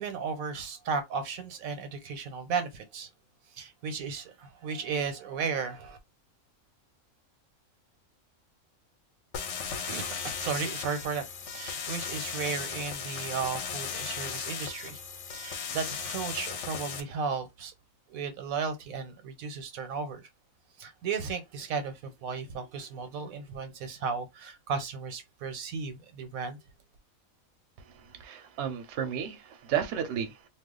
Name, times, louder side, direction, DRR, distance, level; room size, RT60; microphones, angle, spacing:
voice 1, 0.0-3.1 3.5-6.0 9.7-17.7 18.1-20.3 20.8-26.6, right 5 dB, 80° right, 1.2 m, -35 dB
sound 1, 9.3-17.0, left 6 dB, 65° left, 0.8 m, -36 dB
voice 2, 27.8-30.5, right 8 dB, 60° right, 0.9 m, -33 dB
2.4 x 2.3 x 3.7 m
omnidirectional pair, 1.5 m